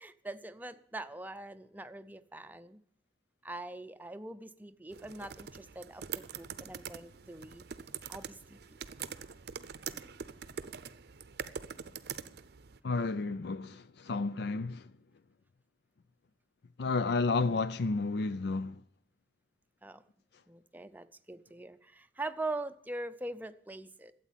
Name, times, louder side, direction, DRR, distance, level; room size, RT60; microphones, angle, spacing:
voice 1, 0.0-2.8 3.4-7.7 8.1-8.6 19.8-20.0 20.5-24.1, right 2 dB, 10° right, 0.6 m, -42 dB
sound 1, 4.9-12.8, right 7 dB, 65° right, 0.7 m, -44 dB
voice 2, 12.8-14.9 16.8-18.8, left 3 dB, 65° left, 0.5 m, -31 dB
12.5 x 8.3 x 9.0 m
head